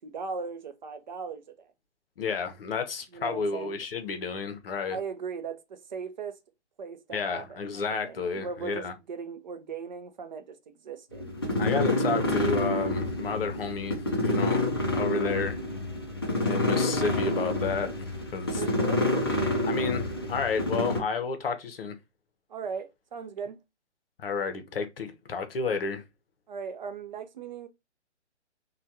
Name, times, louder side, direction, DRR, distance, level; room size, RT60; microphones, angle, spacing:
voice 1, 0.0-1.7 3.1-3.7 4.9-6.4 6.8-11.3 18.5-19.0 22.5-23.6 26.5-27.7, right 5 dB, 40° right, 0.5 m, -38 dB
voice 2, 2.2-5.0 7.1-8.9 11.6-14.6 14.9-15.6 16.4-17.9 18.3-18.6 19.6-21.9 24.2-26.0, left 5 dB, 55° left, 0.7 m, -31 dB
sound 1, 11.1-21.0, left 1 dB, 25° left, 0.3 m, -28 dB
3.2 x 2.3 x 2.6 m
figure-of-eight pair, 130°, 35 cm